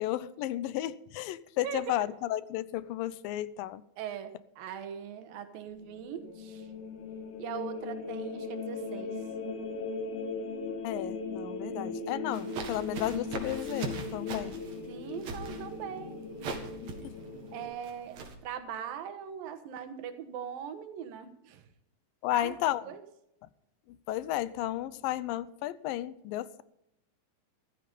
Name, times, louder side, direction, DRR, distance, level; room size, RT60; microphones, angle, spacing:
voice 1, 0.0-3.8 10.8-14.6 22.2-22.9 24.1-26.6, left 14 dB, 85° left, 2.4 m, -33 dB
voice 2, 1.6-2.1 4.0-6.7 7.4-9.2 11.7-11.9 14.9-16.2 17.5-21.7 22.3-23.0, right 8 dB, 85° right, 3.1 m, -41 dB
sound 1, 5.7-17.7, left 4 dB, 65° left, 3.1 m, -38 dB
sound 2, 12.3-18.3, right 4 dB, 55° right, 3.0 m, -41 dB
15.0 x 12.5 x 5.3 m
omnidirectional pair, 4.0 m